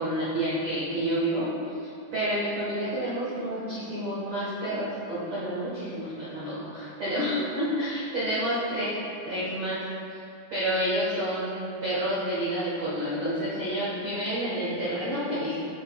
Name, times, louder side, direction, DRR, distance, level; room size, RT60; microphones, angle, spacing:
voice 1, 0.0-8.9 9.2-9.8 10.1-10.2 10.5-15.6, equal, 85° right, -11 dB, 1.0 m, -29 dB
7.8 x 6.3 x 2.4 m, 2.5 s
omnidirectional pair, 4.4 m